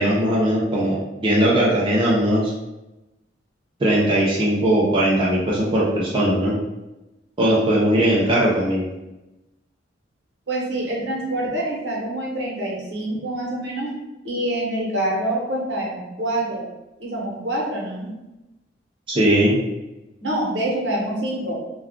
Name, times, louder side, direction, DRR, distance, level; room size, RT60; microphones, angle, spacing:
voice 1, 0.0-2.5 3.8-6.5 7.4-8.8 19.1-19.6, right 1 dB, 30° right, -5 dB, 0.4 m, -19 dB
voice 2, 10.5-13.9 14.2-16.6 17.0-18.1 20.2-21.6, right 1 dB, 70° right, -4 dB, 0.9 m, -26 dB
2.3 x 2.3 x 3.5 m, 0.99 s
head